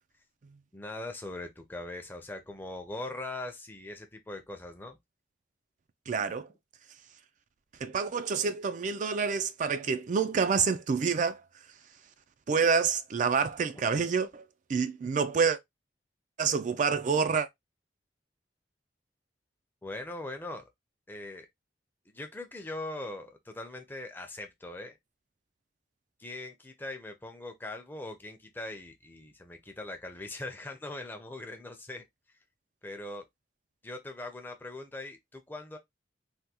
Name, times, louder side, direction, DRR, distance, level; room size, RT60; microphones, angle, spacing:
voice 1, 0.7-5.0 19.8-20.7 21.1-21.5 22.1-25.0 26.2-32.0 32.8-33.2 33.8-35.8, left 2 dB, 10° left, 0.5 m, -41 dB
voice 2, 6.1-6.5 7.8-11.4 12.5-14.4 14.7-15.6 16.4-17.5, right 5 dB, 40° right, 0.3 m, -27 dB
3.4 x 2.2 x 2.8 m
head